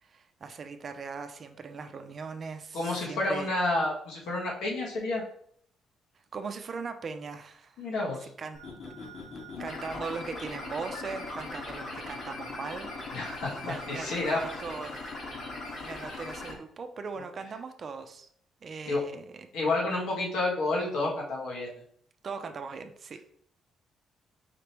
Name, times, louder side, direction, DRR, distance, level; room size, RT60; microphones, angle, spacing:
voice 1, 0.0-3.5 6.3-7.9 8.2-8.6 9.6-13.1 13.6-15.5 15.8-18.3 18.6-19.5 22.2-23.2, right 5 dB, 45° right, 7 dB, 0.5 m, -39 dB
voice 2, 2.7-5.2 7.8-8.3 13.1-14.4 18.9-19.0 19.5-21.7, left 2 dB, 85° left, -3 dB, 1.6 m, -30 dB
sound 1, 8.5-16.5, left 2 dB, 65° left, 1.6 m, -39 dB
5.0 x 3.3 x 3.0 m, 0.63 s
cardioid pair, 90°, 0 cm